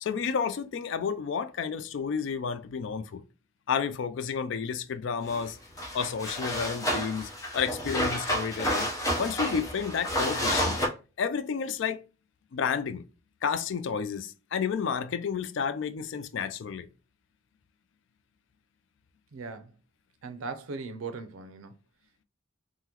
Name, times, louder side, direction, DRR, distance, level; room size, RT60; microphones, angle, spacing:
voice 1, 0.0-3.2 3.7-5.6 5.9-8.9 9.2-10.8 11.2-12.0 12.5-13.1 13.4-16.9, left 6 dB, 65° left, 0.3 m, -31 dB
sound 1, 5.3-5.4 5.8-10.9, equal, 15° left, 0.7 m, -30 dB
voice 2, 19.3-19.7 20.2-21.7, right 4 dB, 90° right, 0.5 m, -38 dB
3.7 x 2.1 x 2.9 m
head